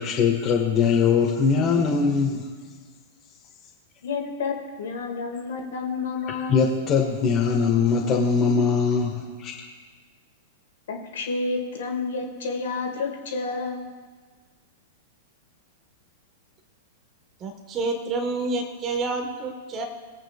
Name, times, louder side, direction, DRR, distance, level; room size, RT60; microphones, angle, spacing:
voice 1, 0.0-2.5 6.3-9.5, left 5 dB, 30° left, -1 dB, 1.5 m, -22 dB
voice 2, 4.0-6.7 10.9-13.8, left 4 dB, 60° left, 2 dB, 2.0 m, -30 dB
voice 3, 17.4-19.8, right 3 dB, 25° right, 3 dB, 1.4 m, -28 dB
21.5 x 8.6 x 2.4 m, 1.5 s
figure-of-eight pair, 100°, 0 cm